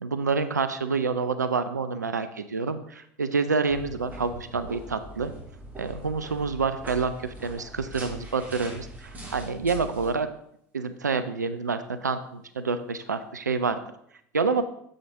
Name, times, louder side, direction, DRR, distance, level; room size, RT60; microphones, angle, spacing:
voice 1, 0.0-5.3 5.8-10.3 10.7-13.8 14.3-14.6, right 4 dB, 85° right, 11 dB, 0.5 m, -28 dB
sound 1, 3.7-10.1, right 1 dB, 20° right, 3.0 m, -42 dB
7.6 x 6.3 x 3.5 m, 0.71 s
figure-of-eight pair, 75°, 9 cm